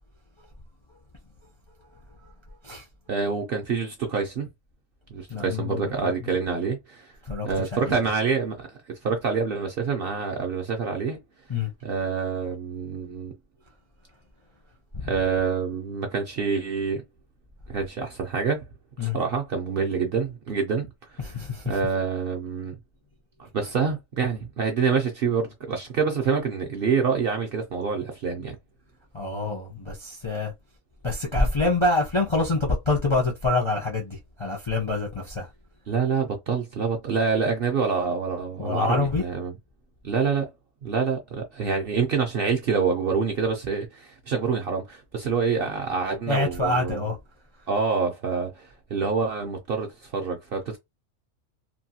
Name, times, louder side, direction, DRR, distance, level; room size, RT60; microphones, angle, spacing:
voice 1, 3.1-4.5 5.1-7.1 7.4-8.8 9.0-11.2 11.8-13.3 15.0-17.0 17.7-18.6 19.0-20.9 21.2-21.3 21.7-22.7 23.4-28.6 35.9-39.5 40.0-40.5 40.8-47.0 47.7-50.8, right 5 dB, 60° right, 0.6 m, -26 dB
voice 2, 5.3-6.3 7.2-8.0 11.5-11.7 14.9-15.1 19.0-19.2 21.2-21.8 29.1-30.5 31.0-35.5 38.6-39.2 46.3-47.2, left 2 dB, 35° left, 0.5 m, -26 dB
2.9 x 2.3 x 2.7 m
omnidirectional pair, 1.4 m